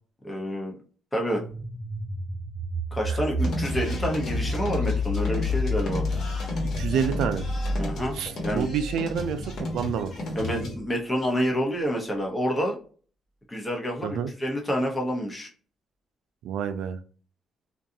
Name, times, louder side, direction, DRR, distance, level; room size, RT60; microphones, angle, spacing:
voice 1, 0.2-0.7 1.1-1.4 2.9-6.0 7.8-8.7 10.3-12.8 13.5-15.5, equal, 15° left, 1 dB, 0.9 m, -28 dB
sound 1, 1.3-10.0, left 2 dB, 15° right, 0.7 m, -30 dB
sound 2, 3.4-10.7, left 2 dB, 65° left, 1.2 m, -34 dB
voice 2, 6.8-7.4 8.1-10.1 14.0-14.3 16.4-17.0, right 7 dB, 85° right, 9 dB, 0.3 m, -28 dB
2.5 x 2.3 x 2.7 m, 0.41 s
cardioid pair, 90°, 0 cm